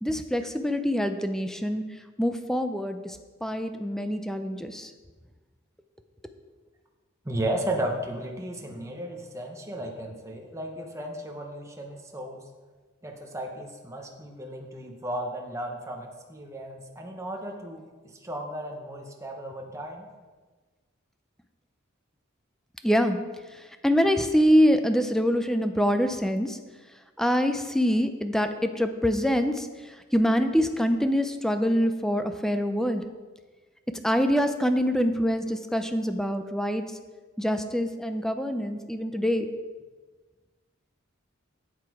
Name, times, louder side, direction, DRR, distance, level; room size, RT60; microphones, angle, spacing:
voice 1, 0.0-1.8 2.2-4.9 22.8-23.2 23.8-26.6 27.2-29.7 30.1-33.0 34.0-36.8 37.4-39.5, equal, ahead, 8 dB, 0.4 m, -25 dB
voice 2, 7.2-12.4 13.0-20.1, right 1 dB, 15° right, 1 dB, 0.9 m, -34 dB
8.2 x 7.5 x 4.8 m, 1.4 s
head